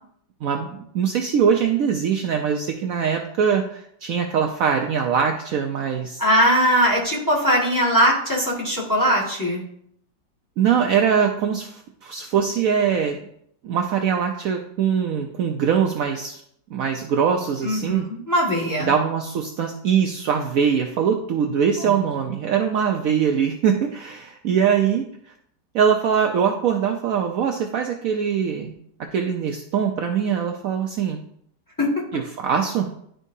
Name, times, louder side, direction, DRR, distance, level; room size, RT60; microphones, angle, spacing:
voice 1, 0.4-6.2 10.6-13.2 13.6-16.4 16.7-18.1 18.8-25.3 25.7-28.7 29.0-31.2 32.1-32.9, right 7 dB, 80° right, 3 dB, 0.7 m, -22 dB
voice 2, 6.2-9.6 17.6-18.9 21.8-22.0 31.8-31.9, equal, 10° left, -4 dB, 1.7 m, -20 dB
11.0 x 4.5 x 2.7 m, 0.70 s
omnidirectional pair, 2.0 m